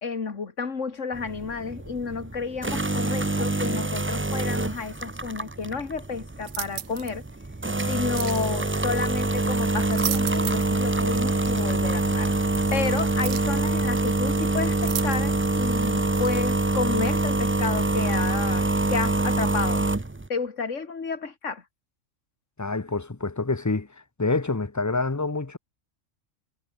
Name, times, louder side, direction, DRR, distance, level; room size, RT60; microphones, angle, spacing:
voice 1, 0.0-7.3 7.9-12.3 12.7-19.9 20.3-21.6, left 5 dB, 70° left, 2.4 m, -31 dB
sound 1, 1.1-20.3, right 2 dB, 15° right, 0.4 m, -25 dB
sound 2, 6.4-7.2 8.2-8.5 9.7-10.8 11.1-11.2 12.5-12.6 13.2-13.6 14.8-15.5 16.1-16.3, right 13 dB, 70° right, 0.9 m, -34 dB
voice 2, 22.6-23.9 24.2-25.6, left 3 dB, 15° left, 0.8 m, -27 dB
omnidirectional pair, 1.3 m